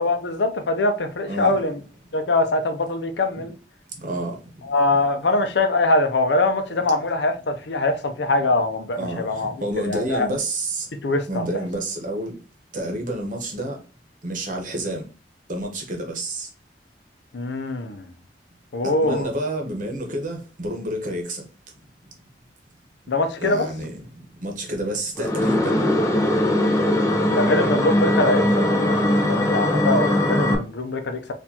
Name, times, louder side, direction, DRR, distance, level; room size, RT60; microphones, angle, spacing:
voice 1, 0.0-1.8 2.1-3.5 4.7-10.3 11.0-11.5 17.3-18.1 18.7-19.3 23.1-23.7 27.3-29.0 29.3-31.3, left 2 dB, 85° left, 0.6 m, -23 dB
voice 2, 1.3-1.6 3.4-3.5 4.0-4.4 9.0-10.9 11.3-12.4 12.7-13.8 14.2-15.1 15.5-16.5 18.8-21.4 23.4-24.1 24.4-25.8, right 1 dB, 50° right, 1.0 m, -29 dB
sound 1, 25.2-30.5, left 1 dB, 20° left, 0.6 m, -20 dB
4.3 x 2.5 x 2.8 m
head